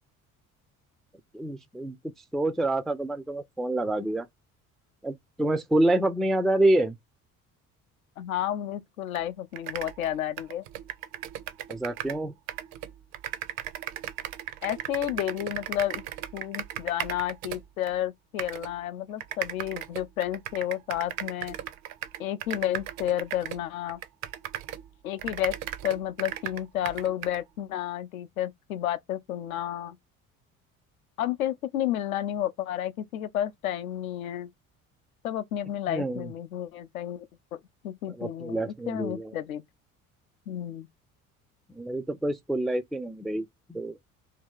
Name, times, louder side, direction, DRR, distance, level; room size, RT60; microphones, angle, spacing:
voice 1, 1.3-2.0 2.3-4.3 5.0-7.0 11.7-12.3 35.9-36.2 38.1-39.3 41.8-44.0, right 1 dB, ahead, 0.3 m, -27 dB
voice 2, 8.2-10.6 14.6-16.0 16.3-21.6 22.2-24.0 25.0-25.5 25.8-30.0 31.2-34.5 35.2-37.2 37.8-39.6 40.5-40.9, left 12 dB, 75° left, 0.6 m, -31 dB
sound 1, 9.1-9.2 9.5-12.2 12.5-17.9 18.4-18.7 19.2-24.9 25.2-27.4, right 12 dB, 55° right, 0.6 m, -36 dB
2.8 x 2.7 x 3.5 m
figure-of-eight pair, 50°, 43 cm